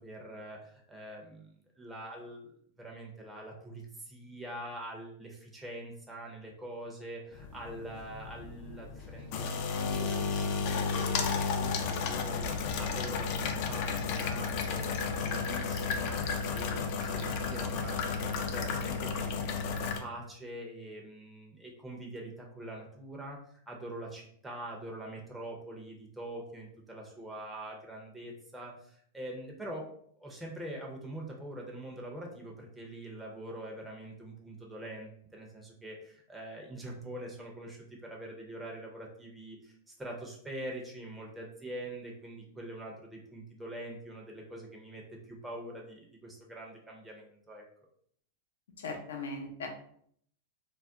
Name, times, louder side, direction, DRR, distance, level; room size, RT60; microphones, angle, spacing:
voice 1, 0.0-1.5 1.8-29.9 30.2-47.6, right 1 dB, 5° right, -1 dB, 0.5 m, -44 dB
sound 1, 7.3-20.0, left 5 dB, 50° left, 0.4 m, -33 dB
voice 2, 48.8-49.7, left 3 dB, 85° left, 2 dB, 0.7 m, -38 dB
2.3 x 2.1 x 3.6 m, 0.63 s
hypercardioid pair, 125°, 0 cm